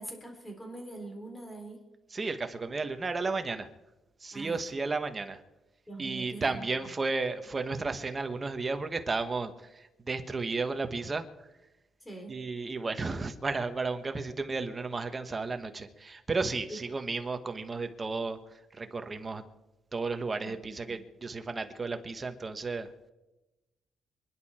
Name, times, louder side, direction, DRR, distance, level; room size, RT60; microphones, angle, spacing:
voice 1, 0.0-1.8 4.3-4.6 5.9-6.7 12.0-12.4 16.7-16.8 20.4-20.5 20.9-21.0, right 2 dB, 10° left, 3 dB, 4.1 m, -43 dB
voice 2, 2.1-3.7 4.2-5.4 6.0-11.2 12.3-18.4 18.7-19.4 19.9-22.9, right 3 dB, 25° right, 7 dB, 1.4 m, -33 dB
27.0 x 11.0 x 4.4 m, 1.0 s
cardioid pair, 130°, 0 cm